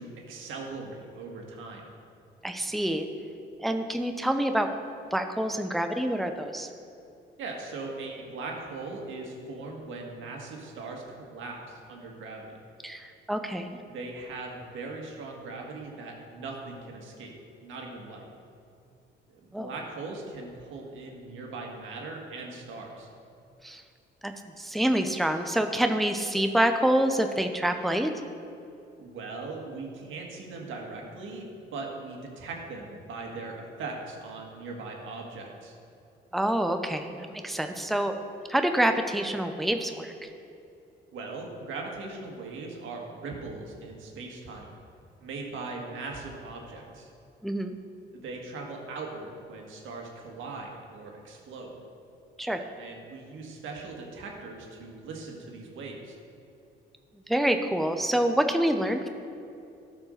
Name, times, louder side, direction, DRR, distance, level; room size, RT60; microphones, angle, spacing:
voice 1, 0.0-1.9 7.4-12.5 13.9-18.3 19.3-23.1 29.0-35.8 41.1-44.7 45.2-47.1 48.1-51.8 52.8-56.2, right 3 dB, 80° right, 0 dB, 1.9 m, -40 dB
voice 2, 2.4-3.1 3.6-4.7 5.1-6.7 12.8-13.8 19.5-19.7 23.6-23.8 24.2-28.1 36.3-38.1 38.5-40.3 47.4-47.7 52.4-52.6 57.3-59.1, right 1 dB, ahead, 6 dB, 0.6 m, -27 dB
12.5 x 5.0 x 6.5 m, 2.7 s
cardioid pair, 90°, 20 cm